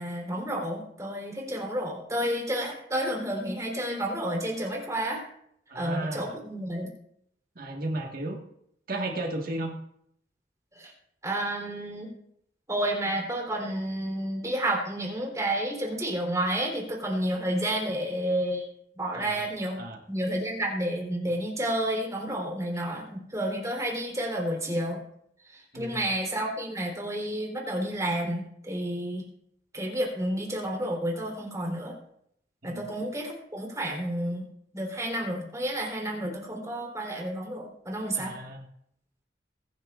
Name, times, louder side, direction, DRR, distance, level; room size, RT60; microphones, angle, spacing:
voice 1, 0.0-5.2 5.7-6.9 10.7-10.9 11.2-12.1 12.7-18.6 19.0-25.0 25.5-29.2 29.7-32.0 32.6-34.5 34.7-38.3, right 1 dB, 20° right, -1 dB, 3.5 m, -30 dB
voice 2, 5.7-6.3 7.5-8.4 8.9-9.7 19.1-19.4 19.8-20.0 25.7-26.0 32.6-32.8 38.1-38.7, right 1 dB, 55° right, 2 dB, 1.6 m, -34 dB
23.0 x 10.0 x 2.5 m, 0.71 s
head